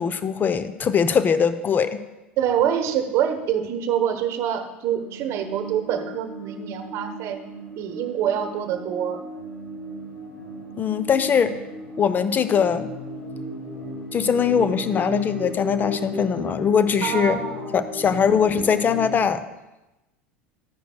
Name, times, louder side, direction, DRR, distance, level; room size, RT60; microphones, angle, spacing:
voice 1, 0.0-2.0 10.8-11.6 12.0-12.9 14.1-17.4 17.7-19.4, left 7 dB, 30° left, 12 dB, 0.6 m, -21 dB
voice 2, 2.4-7.4 7.8-9.2 17.0-17.7, right 9 dB, 45° right, 7 dB, 1.1 m, -25 dB
sound 1, 4.9-19.2, left 1 dB, 60° left, 3.8 m, -35 dB
13.5 x 10.0 x 2.3 m, 0.99 s
figure-of-eight pair, 75°, 6 cm